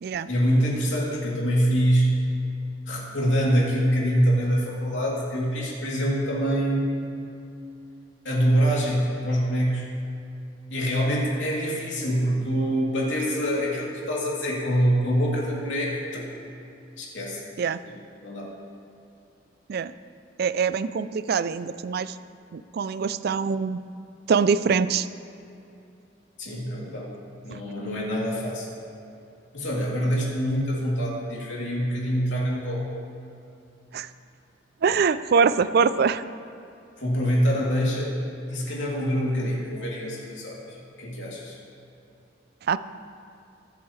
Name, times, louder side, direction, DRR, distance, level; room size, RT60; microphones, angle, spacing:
voice 1, 0.3-2.2 2.9-7.0 8.2-9.9 10.7-16.2 17.0-17.4 18.2-18.5 26.4-27.1 27.4-28.7 29.5-32.9 37.0-38.1 38.5-41.6, equal, 70° left, -5 dB, 3.0 m, -25 dB
voice 2, 20.4-22.2 22.5-23.8 24.3-25.1 27.5-27.6 33.9-34.1 34.8-36.2 42.7-42.8, right 5 dB, 55° right, 14 dB, 0.4 m, -23 dB
21.5 x 8.1 x 3.2 m, 2.6 s
head